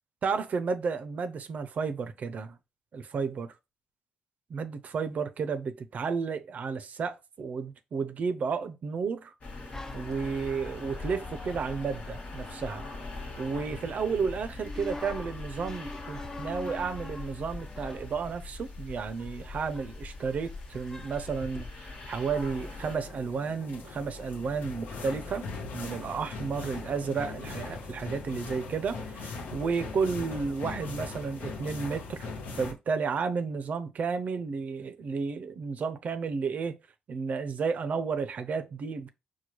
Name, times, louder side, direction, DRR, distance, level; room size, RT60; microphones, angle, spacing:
voice 1, 0.2-2.6 2.9-3.5 4.5-9.3 9.9-12.9 13.4-25.5 25.7-32.3 32.5-36.8 37.1-39.1, right 5 dB, 60° right, 0.5 m, -32 dB
sound 1, 9.4-23.0, left 3 dB, 55° left, 1.2 m, -42 dB
sound 2, 9.7-13.7 14.6-21.7, left 2 dB, 20° left, 0.5 m, -46 dB
sound 3, 22.3-32.7, left 3 dB, 80° left, 0.7 m, -40 dB
4.5 x 2.2 x 3.0 m
supercardioid pair, 55°, 3 cm